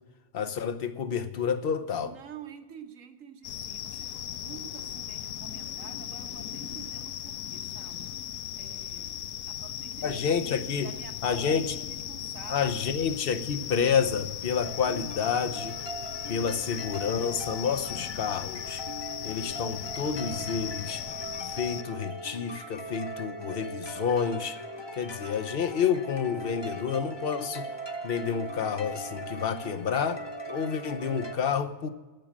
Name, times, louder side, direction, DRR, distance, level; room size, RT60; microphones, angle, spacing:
voice 1, 0.3-2.1 10.0-10.9 11.2-11.7 12.5-15.8 16.3-18.8 19.2-21.0 21.5-24.6 24.9-27.7 28.0-30.2 30.5-31.9, left 7 dB, 50° left, 0.9 m, -29 dB
voice 2, 2.0-9.2 9.5-13.0, right 8 dB, 70° right, 1.5 m, -49 dB
sound 1, 3.4-21.8, left 11 dB, 80° left, 1.0 m, -37 dB
sound 2, 14.6-31.4, right 1 dB, 20° left, 0.9 m, -40 dB
15.5 x 6.3 x 7.3 m
omnidirectional pair, 1.4 m